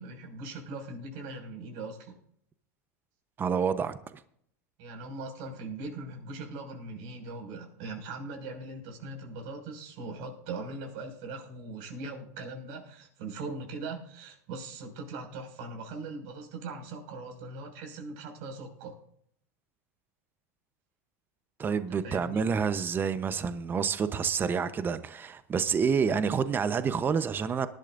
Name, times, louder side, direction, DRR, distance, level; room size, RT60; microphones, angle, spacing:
voice 1, 0.0-2.2 4.8-19.0 21.9-22.4, right 3 dB, 60° right, 5.9 m, -40 dB
voice 2, 3.4-4.0 21.6-27.7, right 6 dB, 25° right, 0.9 m, -28 dB
19.5 x 12.0 x 2.6 m
supercardioid pair, 115°, 9 cm